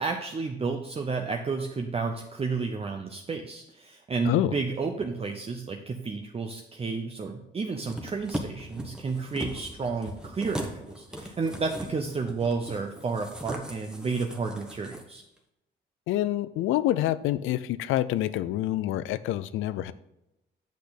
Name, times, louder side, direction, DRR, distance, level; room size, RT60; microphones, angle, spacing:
voice 1, 0.0-15.2, right 4 dB, 30° right, 3 dB, 0.7 m, -31 dB
sound 1, 7.9-15.0 15.4-15.5, equal, 5° right, 1.3 m, -39 dB
voice 2, 16.1-19.9, left 14 dB, 90° left, 15 dB, 0.5 m, -27 dB
8.3 x 6.4 x 4.1 m, 0.88 s
cardioid pair, 90°, 20 cm